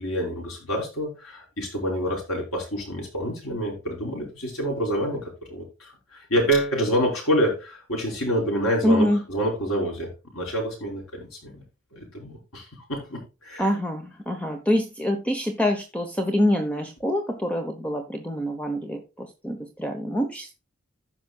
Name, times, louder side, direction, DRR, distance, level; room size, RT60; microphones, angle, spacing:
voice 1, 0.0-11.6 11.9-13.7, equal, 90° left, -1 dB, 5.3 m, -27 dB
voice 2, 8.8-9.2 13.6-20.5, left 1 dB, 5° left, 5 dB, 1.0 m, -25 dB
15.5 x 5.8 x 2.4 m, 0.28 s
head